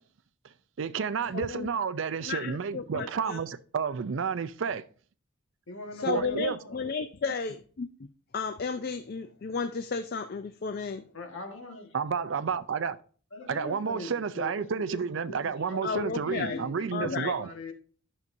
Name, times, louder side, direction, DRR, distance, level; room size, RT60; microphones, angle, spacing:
voice 1, 0.8-4.8 6.1-6.6 11.9-13.0 13.5-17.5, right 6 dB, 60° right, 0.4 m, -31 dB
voice 2, 1.3-1.7 2.2-3.4 5.9-8.1 8.3-11.0 15.8-16.6 16.9-17.3, left 5 dB, 45° left, 0.4 m, -33 dB
voice 3, 5.7-6.8 11.1-11.9 13.3-17.7, left 2 dB, 70° left, 1.6 m, -41 dB
11.0 x 6.7 x 2.6 m
head